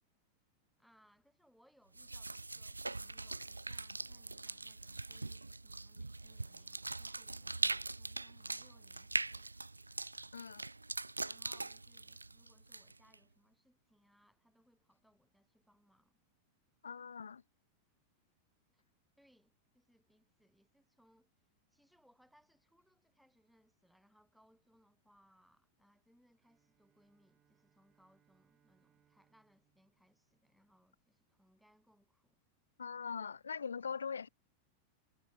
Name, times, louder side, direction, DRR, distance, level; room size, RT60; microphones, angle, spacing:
voice 1, 0.8-9.5 11.2-16.2 18.7-18.8 19.2-21.3 21.7-32.4, equal, ahead, 2.4 m, -71 dB
sound 1, 1.9-13.1, right 2 dB, 80° right, 0.5 m, -42 dB
voice 2, 10.3-10.7 16.8-17.4 32.8-34.3, left 6 dB, 70° left, 0.5 m, -41 dB
Bowed string instrument, 26.4-31.1, right 9 dB, 25° right, 3.2 m, -77 dB
figure-of-eight pair, 90°, 0 cm